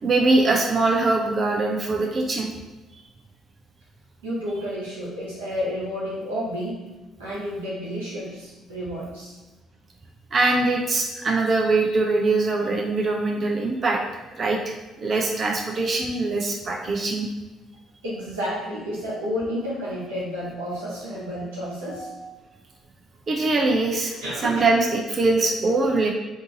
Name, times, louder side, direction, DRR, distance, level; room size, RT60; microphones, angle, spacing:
voice 1, 0.0-2.5 10.3-14.0 14.3-17.3 23.3-24.2 24.4-26.1, right 3 dB, 40° right, 1 dB, 0.5 m, -22 dB
voice 2, 4.2-6.8 7.2-9.4 18.0-22.3 24.2-24.7, equal, 75° right, -7 dB, 1.2 m, -31 dB
3.7 x 2.7 x 3.8 m, 1.2 s
figure-of-eight pair, 45°, 0 cm